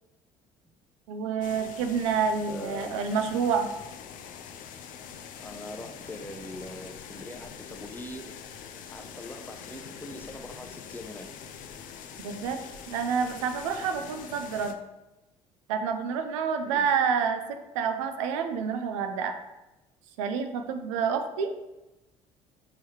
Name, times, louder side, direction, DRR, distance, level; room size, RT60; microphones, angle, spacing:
voice 1, 1.1-3.7 12.2-12.6 12.9-14.8 15.7-19.3 20.2-21.6, right 6 dB, 80° right, 6 dB, 0.4 m, -28 dB
sound 1, 1.4-14.7, left 7 dB, 60° left, 0.5 m, -44 dB
voice 2, 2.5-3.0 5.4-8.4 8.9-11.3 16.6-16.9, left 1 dB, 10° left, 5 dB, 0.6 m, -42 dB
4.6 x 2.9 x 3.1 m, 0.98 s
hypercardioid pair, 60°, 16 cm